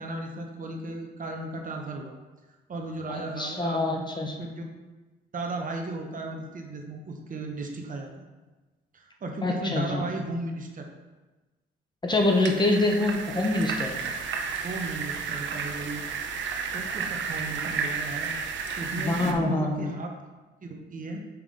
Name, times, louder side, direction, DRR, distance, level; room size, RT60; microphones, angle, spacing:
voice 1, 0.0-2.1 2.7-3.8 4.4-4.7 5.3-8.4 8.9-10.8 14.6-16.0 16.7-18.3 18.8-20.1 20.6-21.2, right 2 dB, 40° right, 2 dB, 1.0 m, -35 dB
voice 2, 3.1-4.4 9.4-10.0 12.0-14.0 19.0-19.9, left 2 dB, 20° left, 2 dB, 0.9 m, -25 dB
sound 1, 12.1-19.3, right 5 dB, 70° right, 0.7 m, -32 dB
5.9 x 4.9 x 3.8 m, 1.2 s
cardioid pair, 90°, 20 cm